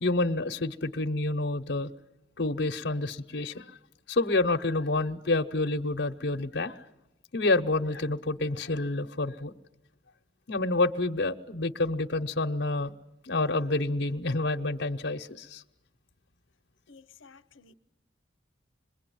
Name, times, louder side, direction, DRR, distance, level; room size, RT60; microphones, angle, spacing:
voice 1, 0.0-1.9 2.4-3.8 4.1-6.8 7.3-9.5 10.5-12.9 13.2-15.6, left 2 dB, 60° left, 0.8 m, -28 dB
voice 2, 16.9-17.7, left 4 dB, 90° left, 0.9 m, -54 dB
26.5 x 21.5 x 9.2 m
head